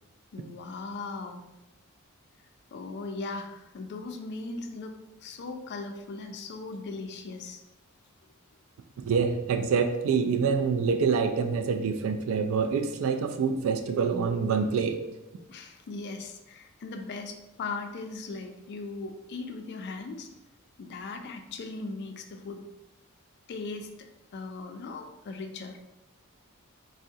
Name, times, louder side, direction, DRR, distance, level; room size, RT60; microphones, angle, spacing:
voice 1, 0.3-1.4 2.7-4.9 5.2-7.6 15.5-20.3 20.8-22.6 23.5-23.9 24.3-25.8, left 3 dB, 50° left, 5 dB, 0.3 m, -38 dB
voice 2, 9.0-15.0, right 5 dB, 65° right, 6 dB, 0.3 m, -26 dB
3.5 x 2.0 x 2.6 m, 0.96 s
head